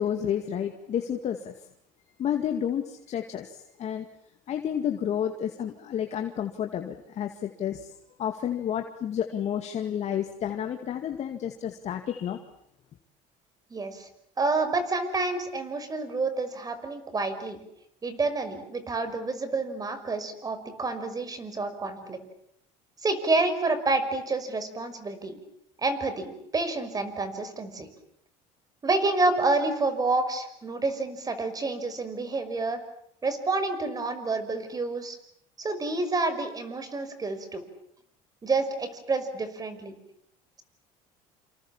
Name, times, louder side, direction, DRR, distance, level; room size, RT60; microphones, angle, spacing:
voice 1, 0.0-1.5 2.2-4.1 4.5-7.9 8.2-12.4, left 9 dB, 50° left, 5 dB, 2.3 m, -30 dB
voice 2, 13.7-14.1 14.4-17.6 18.0-22.2 23.0-25.4 25.8-27.9 28.8-32.8 33.2-35.2 35.6-37.6 38.4-39.9, right 3 dB, 25° right, 11 dB, 5.7 m, -28 dB
28.5 x 28.0 x 7.4 m, 0.72 s
cardioid pair, 110°, 15 cm